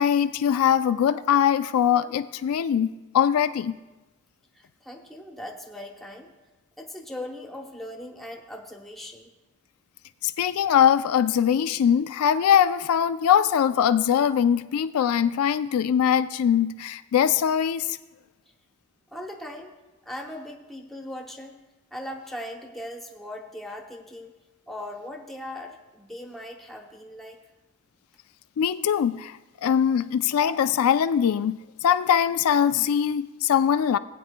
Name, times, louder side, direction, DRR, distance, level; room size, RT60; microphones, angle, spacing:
voice 1, 0.0-3.8 10.2-18.0 28.6-34.0, left 8 dB, 75° left, 11 dB, 0.3 m, -22 dB
voice 2, 4.5-6.3 6.8-9.3 19.1-19.7 20.0-21.6 21.9-24.3 24.7-27.4, left 1 dB, ahead, 1 dB, 0.9 m, -39 dB
18.5 x 8.7 x 2.2 m, 1.1 s
head